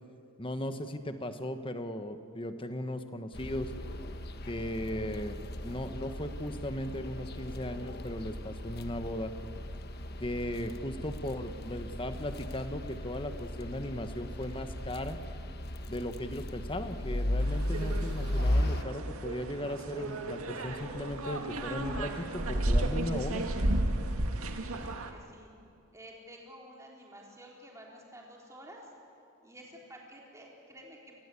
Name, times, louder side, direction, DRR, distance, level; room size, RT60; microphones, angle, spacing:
voice 1, 0.4-3.7 4.4-5.4 5.6-9.3 10.2-15.2 15.9-23.4, left 1 dB, 25° left, 8 dB, 1.3 m, -37 dB
sound 1, 3.3-18.8, left 1 dB, 50° left, 1.3 m, -36 dB
sound 2, 17.4-25.1, right 1 dB, 90° right, 2.0 m, -33 dB
voice 2, 24.7-25.5 25.9-28.9 29.4-31.2, right 1 dB, 15° right, -2 dB, 3.8 m, -51 dB
29.0 x 20.5 x 8.4 m, 2.5 s
head